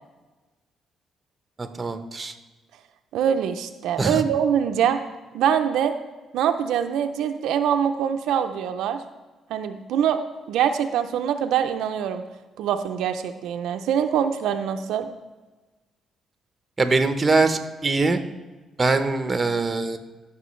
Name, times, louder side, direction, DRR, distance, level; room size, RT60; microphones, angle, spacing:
voice 1, 1.6-2.3 4.0-4.1 16.8-18.2 18.8-20.0, right 3 dB, 25° right, 8 dB, 0.8 m, -22 dB
voice 2, 3.1-5.0 5.3-5.9 6.3-9.0 9.5-10.2 10.5-12.2 12.6-15.1, right 8 dB, 85° right, 7 dB, 0.5 m, -24 dB
15.5 x 6.0 x 3.1 m, 1.2 s
cardioid pair, 90°, 0 cm